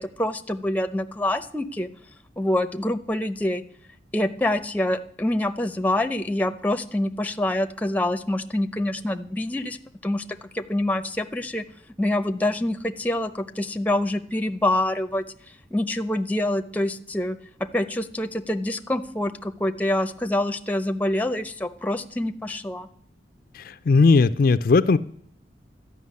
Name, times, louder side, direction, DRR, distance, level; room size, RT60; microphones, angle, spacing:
voice 1, 0.0-1.9 2.4-3.6 4.1-9.8 10.0-10.2 10.5-11.6 12.0-15.2 15.7-17.4 17.7-22.9, left 1 dB, 10° left, 8 dB, 0.6 m, -26 dB
voice 2, 23.5-25.0, left 4 dB, 55° left, 12 dB, 0.4 m, -18 dB
12.5 x 5.9 x 9.5 m, 0.63 s
head